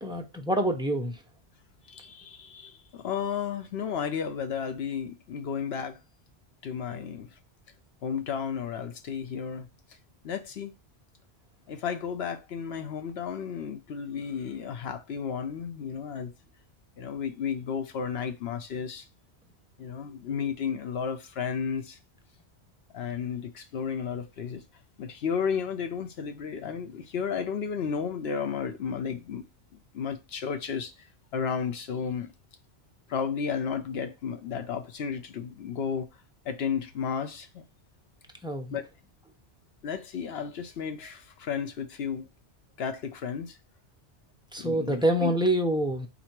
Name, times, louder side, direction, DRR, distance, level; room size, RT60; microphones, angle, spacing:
voice 1, 0.0-1.2 38.4-38.8 44.5-46.1, right 1 dB, 5° right, 0.3 m, -26 dB
voice 2, 1.9-6.0 6.6-7.3 8.0-9.7 10.2-10.7 11.7-16.3 17.0-19.0 19.8-22.0 22.9-24.6 25.0-29.4 29.9-30.9 31.3-32.3 33.1-36.1 36.5-37.6 38.7-38.8 39.8-42.3 42.8-43.6 44.6-45.3, left 6 dB, 70° left, 0.9 m, -33 dB
4.1 x 2.7 x 4.4 m
omnidirectional pair, 1.1 m